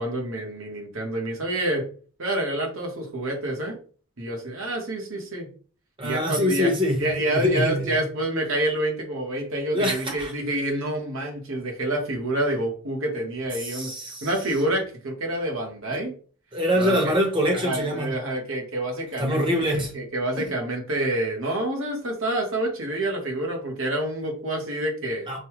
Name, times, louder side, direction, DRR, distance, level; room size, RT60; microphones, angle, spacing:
voice 1, 0.0-1.9 2.2-3.8 4.2-5.5 6.0-6.7 7.0-13.9 14.2-16.1 16.7-17.1 17.6-25.3, right 1 dB, 60° right, 1.2 m, -28 dB
voice 2, 6.0-7.9 9.7-10.3 13.6-14.3 15.9-16.0 16.5-18.2 19.2-19.9 20.4-20.5 25.3-25.4, equal, 20° right, 1.0 m, -24 dB
5.3 x 2.3 x 3.0 m
head